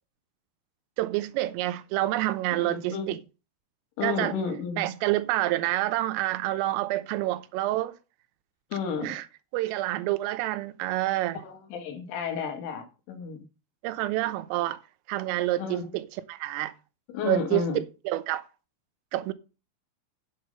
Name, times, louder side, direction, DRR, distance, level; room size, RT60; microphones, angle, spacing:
voice 1, 1.0-3.2 4.0-4.4 4.8-8.0 9.0-9.3 9.5-11.4 13.8-14.8 15.1-16.8 17.3-17.7 18.1-18.5 19.1-19.3, right 16 dB, 90° right, 3.5 m, -28 dB
voice 2, 2.6-3.1 4.0-4.9 8.7-9.1 11.4-13.5 15.6-15.9 17.1-17.8, left 5 dB, 75° left, 4.4 m, -32 dB
8.8 x 8.6 x 5.4 m
omnidirectional pair, 5.7 m